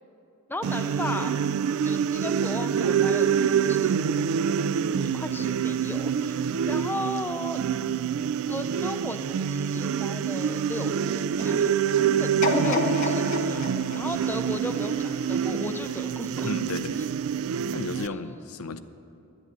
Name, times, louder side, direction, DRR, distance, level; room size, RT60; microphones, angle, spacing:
voice 1, 0.5-1.3 1.8-3.9 4.8-7.6 8.5-13.6 13.9-16.5 18.0-18.4, left 1 dB, 10° left, 7 dB, 0.4 m, -36 dB
sound 1, 0.6-18.1, right 7 dB, 65° right, 0.3 m, -26 dB
sound 2, 12.4-15.5 16.0-16.1, left 3 dB, 35° left, 1.0 m, -30 dB
voice 2, 16.4-17.0 17.7-18.8, left 3 dB, 75° left, 11 dB, 0.6 m, -33 dB
11.0 x 9.8 x 7.4 m, 2.7 s
head